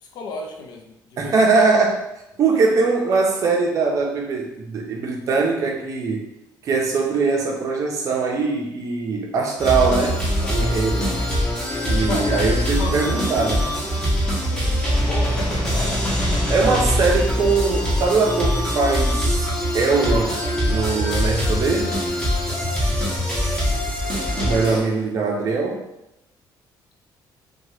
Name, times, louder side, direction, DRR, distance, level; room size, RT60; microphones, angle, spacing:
voice 1, 0.0-1.7 2.5-2.6 10.4-10.8 12.1-12.3 12.6-13.3 14.4-16.6, left 3 dB, 60° left, 2 dB, 0.5 m, -34 dB
voice 2, 1.2-2.0 2.4-6.2 6.6-11.2 11.8-13.7 16.5-22.0 24.4-25.9, right 4 dB, 45° right, 1 dB, 0.5 m, -21 dB
There is Hope, 9.6-24.8, equal, 10° left, 0.7 m, -23 dB
2.8 x 2.2 x 3.0 m, 0.86 s
cardioid pair, 175°, 8 cm